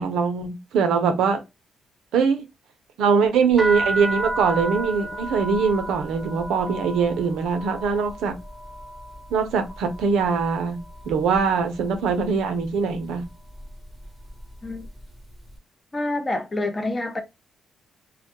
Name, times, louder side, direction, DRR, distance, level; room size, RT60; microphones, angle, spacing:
voice 1, 0.0-1.4 2.1-2.4 3.0-8.3 9.3-10.8 11.1-13.2, right 5 dB, 80° right, 0.5 m, -22 dB
sound 1, 3.5-11.4 11.7-12.4 13.0-13.3 13.6-15.0, right 1 dB, 5° right, 0.8 m, -32 dB
voice 2, 15.9-17.2, left 2 dB, 25° left, 0.5 m, -27 dB
2.1 x 2.1 x 2.9 m
cardioid pair, 90°, 0 cm